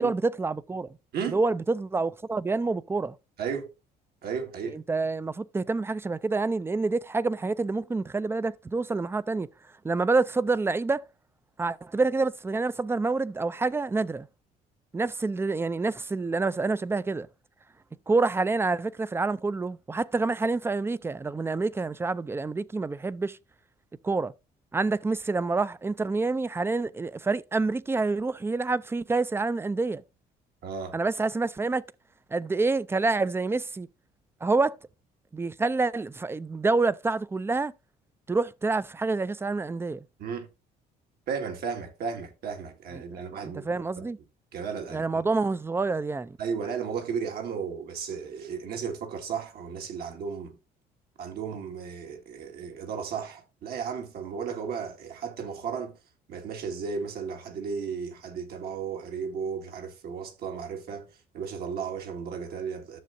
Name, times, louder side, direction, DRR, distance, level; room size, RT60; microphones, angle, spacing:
voice 1, 0.0-0.9 1.3-3.2 4.7-9.5 9.8-11.0 11.6-14.3 14.9-17.3 18.1-23.4 24.0-24.3 24.7-30.0 30.9-31.8 32.3-33.9 34.4-34.8 35.3-37.7 38.3-40.0 43.1-44.2 44.9-46.4, right 3 dB, 15° right, 0.4 m, -27 dB
voice 2, 3.4-3.7 4.2-4.8 30.6-31.0 40.2-40.5 41.3-43.7 44.0-44.1 44.5-45.2 46.4-50.6 51.2-56.0 56.3-61.1 61.3-63.0, right 6 dB, 70° right, 1.9 m, -34 dB
12.5 x 6.8 x 2.6 m
cardioid pair, 110°, 17 cm